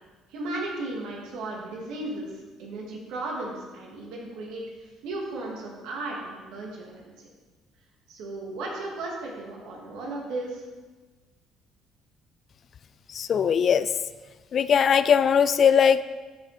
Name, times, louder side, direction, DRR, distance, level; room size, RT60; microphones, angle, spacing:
voice 1, 0.3-4.6 5.0-7.3 8.1-10.6, right 2 dB, 80° right, -2 dB, 2.4 m, -35 dB
voice 2, 13.1-13.9 14.5-16.0, left 7 dB, 50° left, 15 dB, 0.4 m, -20 dB
12.5 x 5.3 x 4.3 m, 1.3 s
supercardioid pair, 75°, 0 cm